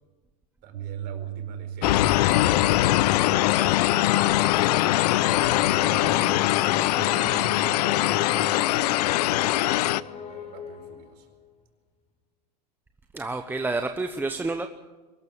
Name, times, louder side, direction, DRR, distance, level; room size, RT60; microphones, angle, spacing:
voice 1, 0.6-2.2 3.2-4.4 5.5-6.3 6.9-11.3, right 6 dB, 50° right, 6 dB, 4.6 m, -44 dB
Piano, 0.7-8.8, right 10 dB, 80° right, 1.1 m, -41 dB
sound 1, 1.8-10.0, left 16 dB, 75° left, 0.6 m, -22 dB
sound 2, 2.8-11.3, left 6 dB, 35° left, 4.4 m, -38 dB
voice 2, 13.1-14.8, right 3 dB, 10° right, 6 dB, 1.0 m, -29 dB
23.0 x 13.5 x 8.6 m, 1.2 s
hypercardioid pair, 115°, 21 cm